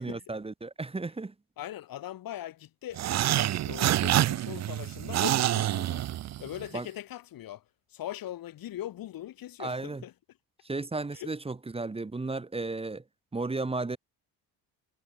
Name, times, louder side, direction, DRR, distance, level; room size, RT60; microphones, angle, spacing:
voice 1, 0.0-1.3 6.7-6.9 9.6-10.0 10.6-13.0 13.3-14.0, right 3 dB, 15° right, 1.6 m, -34 dB
voice 2, 1.6-6.1 6.4-7.6 7.9-10.1 11.1-11.3, left 13 dB, 55° left, 1.6 m, -41 dB
sound 1, 2.9-6.7, right 13 dB, 45° right, 0.5 m, -27 dB
cardioid pair, 125°, 41 cm